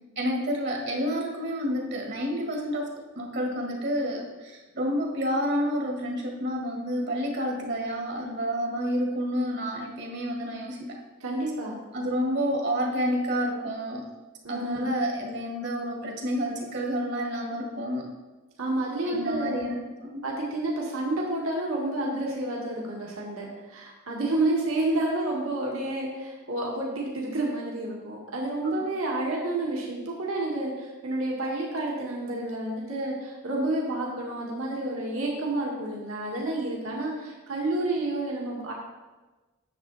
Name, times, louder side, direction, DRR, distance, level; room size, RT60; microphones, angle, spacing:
voice 1, 0.2-2.9 3.1-10.9 11.9-14.1 14.5-18.1 19.1-20.2, equal, 50° right, 1 dB, 1.8 m, -29 dB
voice 2, 11.2-11.8 14.4-14.9 18.6-19.7 20.2-38.7, right 2 dB, 65° right, -3 dB, 2.0 m, -30 dB
9.8 x 7.3 x 4.1 m, 1.2 s
head